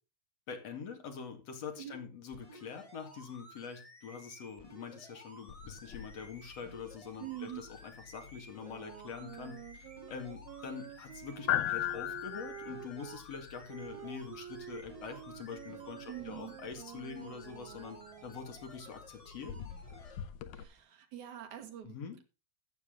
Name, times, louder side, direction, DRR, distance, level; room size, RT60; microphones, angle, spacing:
voice 1, 0.5-19.6 21.8-22.2, left 6 dB, 50° left, 4 dB, 3.0 m, -45 dB
sound 1, 2.3-20.2 20.8-20.9, left 1 dB, 10° left, 2.6 m, -55 dB
sound 2, 5.5-20.6, left 13 dB, 75° left, 2.1 m, -42 dB
voice 2, 7.2-7.6 16.1-16.6 20.5-22.0, right 12 dB, 60° right, 6 dB, 2.9 m, -44 dB
sound 3, 8.5-13.2 13.7-18.7, right 13 dB, 85° right, 2.5 m, -49 dB
14.0 x 8.3 x 3.8 m, 0.30 s
omnidirectional pair, 4.0 m